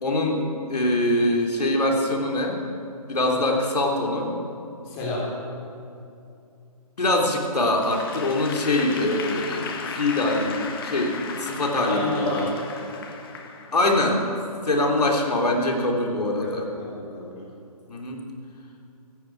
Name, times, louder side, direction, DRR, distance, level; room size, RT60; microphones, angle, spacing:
voice 1, 0.0-2.6 3.1-4.3 7.0-12.4 13.7-14.3 14.6-16.7 17.9-18.2, left 1 dB, 85° left, 0 dB, 3.2 m, -23 dB
voice 2, 4.8-5.3 11.7-12.6 16.4-17.4, left 2 dB, 20° left, -4 dB, 3.8 m, -30 dB
Applause / Crowd, 7.8-14.2, left 5 dB, 35° left, 1.5 m, -36 dB
16.0 x 16.0 x 4.7 m, 2.6 s
hypercardioid pair, 160°, 20 cm